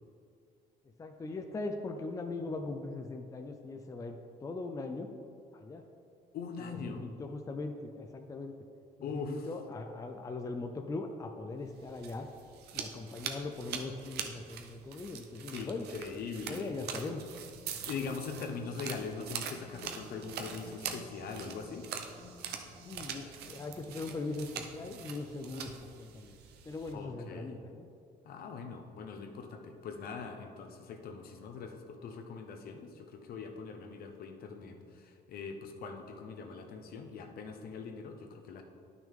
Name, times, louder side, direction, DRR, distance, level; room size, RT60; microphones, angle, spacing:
voice 1, 1.0-5.1 5.5-5.9 6.6-8.5 9.0-12.3 12.7-15.9 16.5-17.2 22.9-26.4 26.6-27.9, left 3 dB, 20° left, 5 dB, 0.5 m, -40 dB
voice 2, 6.3-7.0 9.0-9.5 15.5-16.7 17.9-21.9 26.9-27.5 28.2-38.6, left 5 dB, 60° left, 4 dB, 0.9 m, -42 dB
sound 1, 11.7-26.9, right 7 dB, 75° right, 0.8 m, -44 dB
sound 2, 17.2-25.0, left 3 dB, 40° left, 1.4 m, -55 dB
10.0 x 6.1 x 3.7 m, 2.3 s
cardioid pair, 110°, 17 cm